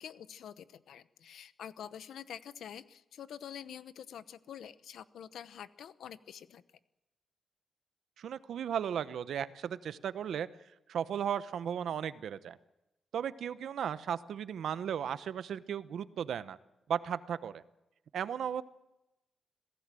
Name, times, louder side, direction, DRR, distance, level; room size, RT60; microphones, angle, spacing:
voice 1, 0.0-6.6, left 9 dB, 90° left, 14 dB, 0.9 m, -47 dB
voice 2, 8.2-10.5 10.9-12.6 13.1-16.6 16.9-17.6 18.1-18.6, right 8 dB, 75° right, 14 dB, 0.8 m, -35 dB
26.5 x 17.5 x 7.6 m, 0.98 s
wide cardioid pair, 145°, 0 cm